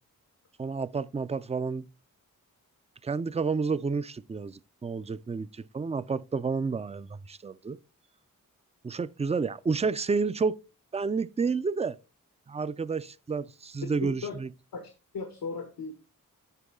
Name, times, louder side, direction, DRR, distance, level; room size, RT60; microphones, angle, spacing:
voice 1, 0.6-1.9 3.0-7.8 8.8-10.6 10.9-12.0 12.5-14.5, right 4 dB, 20° right, 0.4 m, -30 dB
voice 2, 14.0-14.3 14.7-15.9, left 4 dB, 90° left, 1.3 m, -37 dB
8.3 x 5.3 x 3.6 m
cardioid pair, 45°, 35 cm